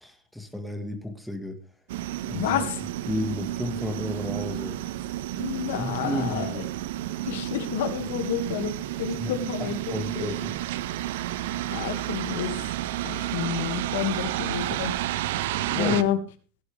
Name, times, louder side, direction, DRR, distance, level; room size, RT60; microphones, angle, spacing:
voice 1, 0.0-1.6 2.3-2.6 3.1-4.8 5.8-6.7 9.1-10.5 15.7-16.1, left 1 dB, ahead, 1.9 m, -33 dB
sound 1, 1.9-16.0, right 14 dB, 75° right, 0.9 m, -31 dB
voice 2, 2.3-2.8 5.4-6.7 7.2-8.7 9.0-9.8 10.2-10.3 11.7-12.6 13.0-14.9 15.8-16.2, left 10 dB, 80° left, 2.3 m, -29 dB
17.0 x 11.0 x 3.6 m
supercardioid pair, 145°, 0 cm